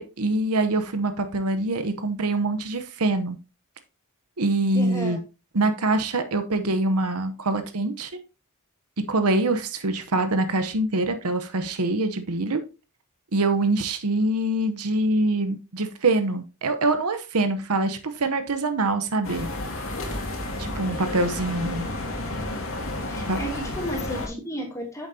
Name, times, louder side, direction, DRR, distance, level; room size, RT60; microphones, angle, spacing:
voice 1, 0.0-3.4 4.4-5.2 5.5-8.1 9.1-12.6 13.3-19.5 20.6-21.9 23.3-23.4, right 2 dB, 85° right, 0.9 m, -24 dB
voice 2, 4.7-5.2 23.1-25.1, equal, 15° left, 2.7 m, -33 dB
sound 1, 19.2-24.3, left 2 dB, 65° left, 2.2 m, -31 dB
8.9 x 7.2 x 2.8 m
head